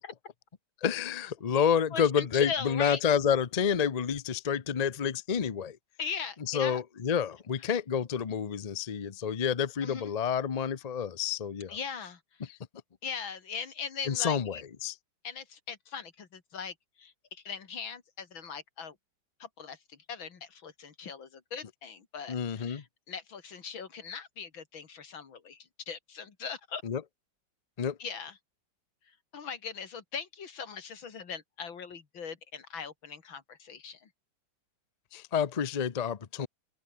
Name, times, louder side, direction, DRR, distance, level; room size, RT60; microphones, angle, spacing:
voice 1, 0.8-5.8 6.5-11.8 12.5-12.6 14.1-14.9 22.3-22.8 26.8-27.0 27.8-28.0 35.1-36.5, left 7 dB, 60° left, 0.4 m, -29 dB
voice 2, 1.9-3.0 6.0-6.8 9.8-10.1 11.7-12.2 13.0-14.6 15.2-18.9 19.4-19.8 20.1-26.8 28.0-28.4 29.3-34.1, left 6 dB, 85° left, 3.1 m, -40 dB
omnidirectional pair, 2.1 m